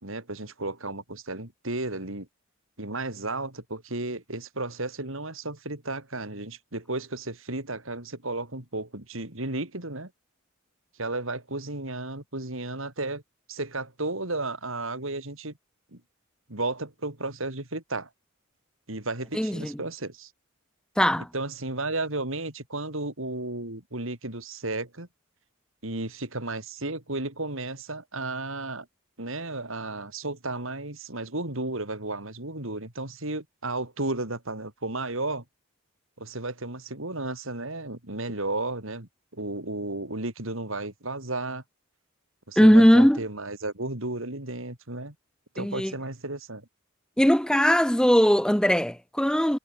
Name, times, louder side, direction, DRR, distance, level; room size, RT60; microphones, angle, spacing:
voice 1, 0.0-2.3 2.8-10.1 11.0-13.2 13.5-15.5 15.9-16.0 16.5-18.1 18.9-20.3 21.3-25.1 25.8-28.9 29.2-35.4 36.2-41.6 42.5-45.1 45.5-46.7, right 2 dB, 65° right, 3.9 m, -33 dB
voice 2, 19.3-19.7 21.0-21.3 42.6-43.2 45.6-45.9 47.2-49.6, equal, 5° left, 1.0 m, -19 dB
head